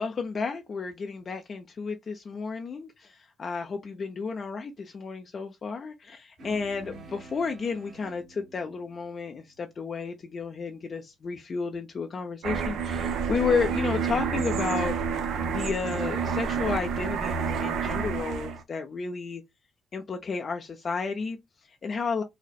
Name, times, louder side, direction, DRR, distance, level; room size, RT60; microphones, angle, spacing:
voice 1, 0.0-14.9 15.2-19.4 19.9-22.2, left 5 dB, 45° left, 0.4 m, -32 dB
sound 1, 6.4-11.1, right 1 dB, 55° right, 1.8 m, -49 dB
sound 2, 12.4-18.6, right 6 dB, 75° right, 0.6 m, -29 dB
4.1 x 2.0 x 2.3 m
cardioid pair, 90°, 0 cm